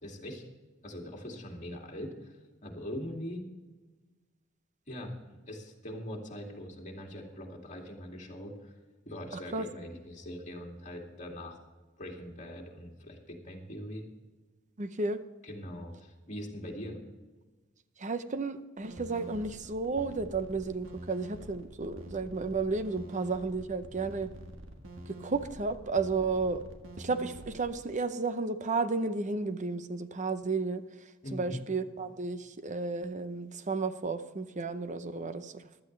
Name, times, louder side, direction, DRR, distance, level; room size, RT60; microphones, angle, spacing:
voice 1, 0.0-0.4 0.8-3.4 4.9-5.1 5.5-8.7 9.1-11.6 12.0-14.0 15.4-17.0 31.2-31.6, equal, 40° left, 0 dB, 2.4 m, -42 dB
voice 2, 14.8-15.2 18.0-24.3 25.2-26.6 27.0-30.8 31.3-35.8, right 4 dB, 40° right, 11 dB, 0.7 m, -33 dB
sound 1, 18.8-27.7, right 1 dB, 70° right, 1.6 m, -47 dB
15.0 x 12.0 x 3.3 m, 1.3 s
head